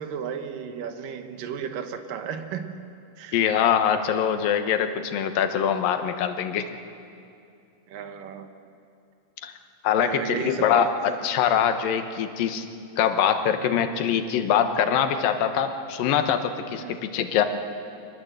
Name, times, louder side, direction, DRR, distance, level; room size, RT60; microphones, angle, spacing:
voice 1, 0.0-2.8 3.2-3.4 7.9-8.5 10.0-10.9 16.7-16.9, right 7 dB, 75° right, 8 dB, 2.8 m, -34 dB
voice 2, 3.3-6.7 9.4-9.5 9.8-10.9 11.2-12.7 13.0-17.5, left 8 dB, 80° left, 8 dB, 2.9 m, -23 dB
24.5 x 19.5 x 7.9 m, 2.6 s
omnidirectional pair, 4.0 m